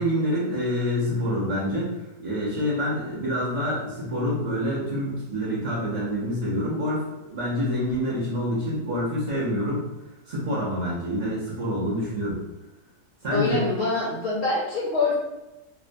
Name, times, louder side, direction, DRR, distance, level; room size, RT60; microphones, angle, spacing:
voice 1, 0.0-1.9 2.2-9.8 10.2-12.4 13.2-13.6, equal, 65° right, -7 dB, 0.4 m, -27 dB
voice 2, 13.3-15.1, left 3 dB, 70° left, -6 dB, 1.1 m, -25 dB
2.9 x 2.2 x 2.5 m, 0.99 s
omnidirectional pair, 1.7 m